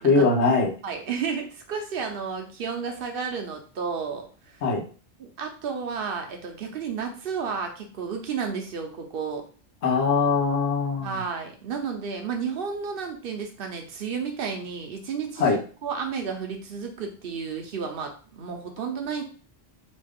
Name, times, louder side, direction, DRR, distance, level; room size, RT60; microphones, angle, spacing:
voice 1, 0.0-0.7 4.6-4.8 9.8-11.1 15.4-15.6, left 4 dB, 85° left, -1 dB, 1.2 m, -21 dB
voice 2, 0.8-4.6 5.2-9.5 11.0-19.2, right 6 dB, 60° right, 3 dB, 0.9 m, -32 dB
3.1 x 2.4 x 3.4 m, 0.39 s
omnidirectional pair, 1.1 m